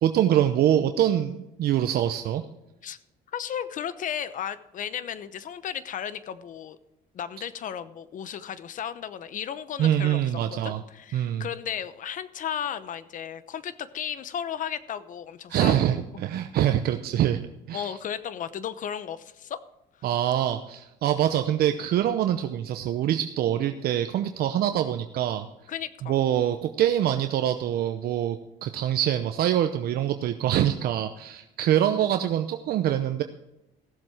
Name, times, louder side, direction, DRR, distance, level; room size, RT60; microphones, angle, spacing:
voice 1, 0.0-2.4 9.8-10.8 11.1-11.5 15.5-17.4 17.7-18.0 20.0-25.5 26.0-33.2, right 11 dB, 65° right, 7 dB, 0.8 m, -24 dB
voice 2, 3.3-6.8 7.1-10.2 10.5-16.0 17.7-19.6 25.7-26.2, left 9 dB, 50° left, 14 dB, 0.9 m, -34 dB
16.0 x 7.5 x 4.9 m, 0.89 s
cardioid pair, 110°, 17 cm